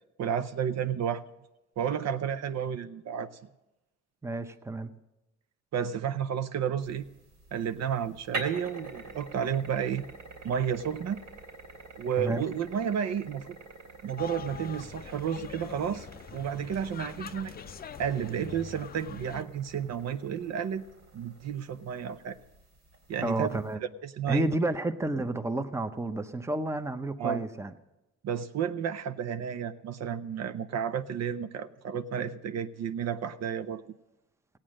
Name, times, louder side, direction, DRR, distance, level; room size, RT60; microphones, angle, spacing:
voice 1, 0.2-1.2 1.8-3.3 5.7-7.1 7.5-10.0 10.4-11.2 12.0-13.6 14.0-17.5 18.0-20.8 21.1-22.4 23.1-23.6 24.0-24.5 27.2-27.5 28.2-33.8, right 8 dB, 60° right, 12 dB, 0.6 m, -31 dB
voice 2, 4.2-4.9 12.2-12.4 23.2-23.8 24.3-27.7, right 2 dB, 10° right, 11 dB, 0.7 m, -31 dB
sound 1, 6.8-23.7, right 3 dB, 75° right, 2.9 m, -46 dB
sound 2, 14.2-19.4, left 8 dB, 30° left, 0.4 m, -44 dB
16.0 x 8.8 x 6.4 m, 1.0 s
cardioid pair, 90°, 30 cm